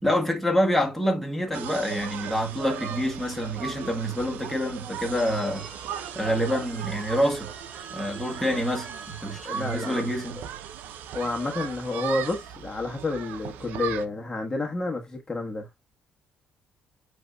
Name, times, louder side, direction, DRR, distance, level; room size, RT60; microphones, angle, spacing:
voice 1, 0.0-5.7 6.1-7.5 7.9-10.4, equal, ahead, 1.5 m, -27 dB
sound 1, 1.5-14.0, right 9 dB, 80° right, 0.5 m, -38 dB
Telephone, 5.1-10.9, right 3 dB, 35° right, 3.5 m, -46 dB
voice 2, 9.4-10.1 11.1-15.7, left 2 dB, 20° left, 1.2 m, -30 dB
7.8 x 2.7 x 2.3 m
cardioid pair, 90°, 3 cm